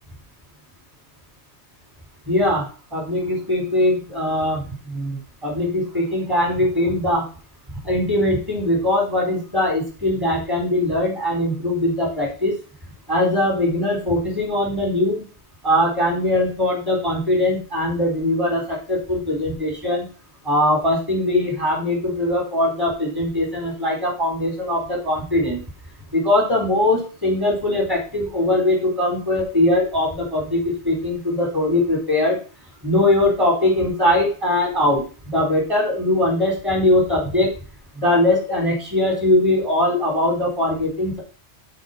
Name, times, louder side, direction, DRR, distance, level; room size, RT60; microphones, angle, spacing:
voice 1, 2.3-2.7 2.9-7.2 7.8-12.6 13.1-15.2 15.6-20.0 20.4-25.6 26.1-32.4 32.8-37.5 38.0-41.2, left 1 dB, 20° right, -2 dB, 4.1 m, -21 dB
7.8 x 4.5 x 5.8 m, 0.37 s
omnidirectional pair, 1.1 m